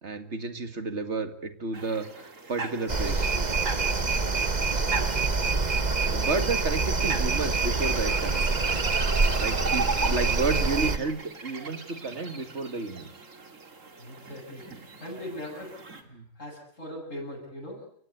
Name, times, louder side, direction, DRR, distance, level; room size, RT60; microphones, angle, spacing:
voice 1, 0.0-3.3 5.8-8.4 9.4-13.1 16.1-16.2, right 3 dB, 60° right, 9 dB, 2.5 m, -31 dB
sound 1, 1.7-16.0, right 3 dB, 90° right, 2.8 m, -39 dB
sound 2, 2.9-11.0, right 4 dB, 35° right, 1.4 m, -26 dB
voice 2, 13.9-15.7 16.0-17.9, left 1 dB, 90° left, -4 dB, 8.1 m, -40 dB
29.5 x 17.0 x 8.2 m, 0.62 s
omnidirectional pair, 1.3 m